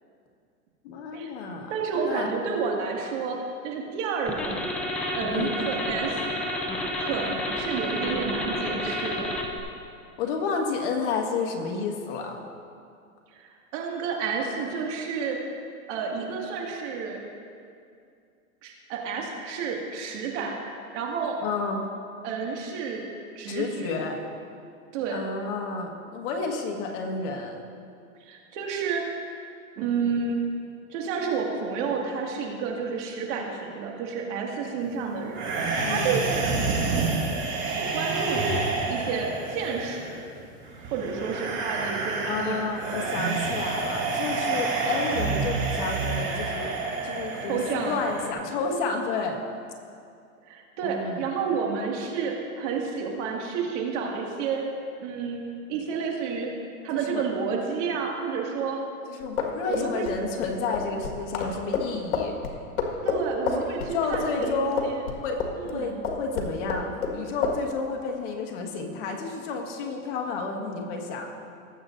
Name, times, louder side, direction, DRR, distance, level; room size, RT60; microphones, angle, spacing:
voice 1, 0.8-1.7 2.0-2.3 5.3-5.6 10.2-12.4 21.4-21.9 23.5-24.2 25.1-27.6 35.8-36.2 42.2-46.7 47.0-49.4 50.8-51.2 57.0-57.2 59.1-62.4 63.6-64.9 65.2-71.3, left 4 dB, 55° left, 1 dB, 1.6 m, -31 dB
voice 2, 1.7-3.4 3.6-4.6 5.1-6.3 7.0-9.3 13.3-15.4 15.9-17.2 18.6-20.6 20.9-21.4 22.2-23.1 23.4-23.9 24.9-25.2 28.2-29.0 29.8-30.4 30.9-36.5 37.6-38.6 38.9-40.2 40.9-42.7 47.4-48.0 50.5-54.7 55.0-55.4 55.7-56.5 56.8-58.8 59.6-60.1 63.0-65.0 65.6-66.0, right 5 dB, 55° right, 0 dB, 2.1 m, -30 dB
sound 1, 4.3-9.6, left 1 dB, 5° left, 0.4 m, -30 dB
sound 2, 35.3-48.3, right 3 dB, 25° right, 2.2 m, -29 dB
sound 3, 59.2-65.8 66.0-67.2 67.4-67.6, left 6 dB, 80° left, 1.7 m, -29 dB
19.0 x 8.0 x 2.6 m, 2.4 s
hypercardioid pair, 130°, 43 cm